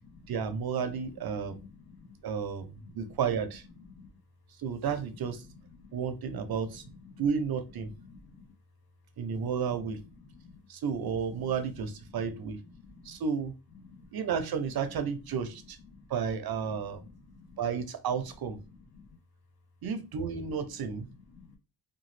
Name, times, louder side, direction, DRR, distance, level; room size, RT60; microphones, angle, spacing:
voice 1, 0.3-1.6 2.2-3.7 4.6-5.5 5.9-6.8 7.2-7.9 9.2-10.0 10.7-12.6 13.0-13.5 14.1-15.8 16.1-17.0 17.6-18.6 19.8-21.1, right 6 dB, 55° right, 0.5 m, -32 dB
voice 2, 1.4-2.2 2.8-3.1 3.9-4.1 5.8-5.9 6.8-7.2 7.8-8.5 10.3-10.6 11.4-11.5 12.8-13.2 13.9-14.1 15.9-16.0 17.0-17.6 18.9-19.2 21.3-21.6, left 4 dB, 55° left, 1.0 m, -53 dB
2.8 x 2.3 x 3.1 m
cardioid pair, 105°, 44 cm